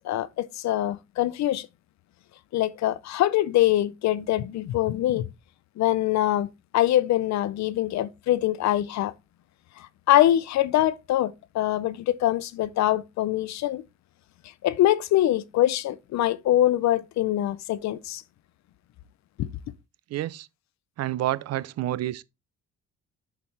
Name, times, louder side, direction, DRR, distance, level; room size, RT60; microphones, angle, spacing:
voice 1, 0.0-1.7 2.5-5.3 5.8-6.5 6.7-9.1 10.1-13.8 14.6-18.2 19.4-19.5, left 13 dB, 70° left, 0.5 m, -23 dB
voice 2, 20.1-20.5 21.0-22.2, right 14 dB, 60° right, 0.5 m, -29 dB
7.1 x 6.0 x 3.2 m
cardioid pair, 175°, 29 cm